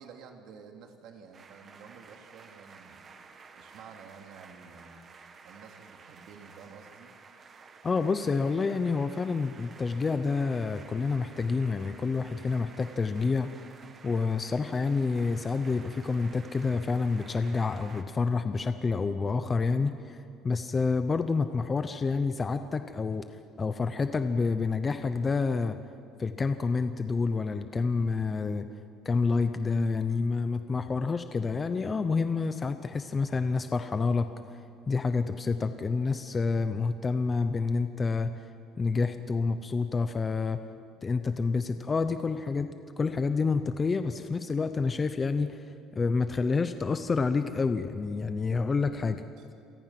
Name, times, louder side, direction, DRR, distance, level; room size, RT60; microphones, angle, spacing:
voice 1, 0.0-3.0 3.5-5.0 5.4-7.1 49.4-49.5, right 6 dB, 50° right, 3 dB, 2.9 m, -50 dB
sound 1, 1.3-18.0, right 5 dB, 25° right, 1.6 m, -52 dB
voice 2, 7.8-13.5 14.0-23.2 23.6-25.8 26.2-28.7 29.0-34.3 34.9-38.4 38.8-40.6 41.0-49.2, left 4 dB, 15° left, 9 dB, 0.7 m, -28 dB
29.5 x 24.0 x 6.0 m, 2.5 s
cardioid pair, 180°, 0 cm